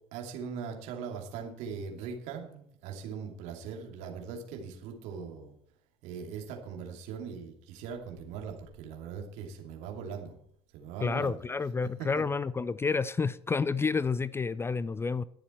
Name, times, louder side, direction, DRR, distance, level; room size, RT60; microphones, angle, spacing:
voice 1, 0.1-5.5 6.0-10.4 10.7-11.4 12.0-12.2, right 6 dB, 60° right, 2.7 m, -40 dB
voice 2, 11.0-15.2, left 4 dB, 20° left, 0.4 m, -30 dB
21.0 x 7.0 x 4.5 m
figure-of-eight pair, 60°, 13 cm